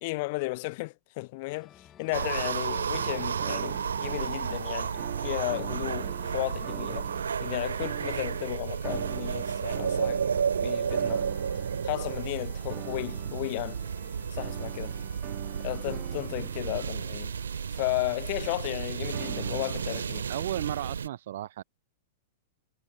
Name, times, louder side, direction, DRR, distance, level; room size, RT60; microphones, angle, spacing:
voice 1, 0.0-10.2 10.6-11.2 11.8-13.8 14.3-14.9 15.6-17.3 17.7-20.3, left 25 dB, 55° left, 0.9 m, -34 dB
sound 1, 1.5-16.3, left 10 dB, 30° left, 5.1 m, -55 dB
sound 2, 2.1-21.1, right 7 dB, 85° right, 1.4 m, -32 dB
sound 3, 3.0-4.6 5.0-7.4 7.8-17.8 19.1-20.9, right 40 dB or more, 50° right, 6.2 m, -44 dB
voice 2, 20.3-21.6, right 13 dB, 65° right, 1.4 m, -34 dB
hypercardioid pair, 110°, 0 cm